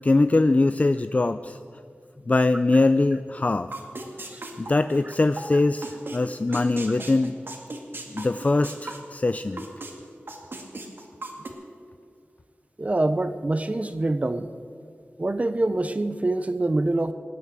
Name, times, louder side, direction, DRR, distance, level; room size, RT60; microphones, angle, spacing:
voice 1, 0.0-1.6 2.3-3.7 4.6-7.3 8.1-9.6, left 2 dB, 35° left, 11 dB, 0.4 m, -22 dB
sound 1, 3.7-5.4 5.8-6.2 6.5-9.9 10.3-11.5, right 2 dB, 60° right, 2.1 m, -37 dB
voice 2, 12.8-14.5 15.2-17.1, right 2 dB, 35° right, 11 dB, 0.6 m, -25 dB
19.0 x 9.6 x 7.5 m, 2.4 s
wide cardioid pair, 75°, 4 cm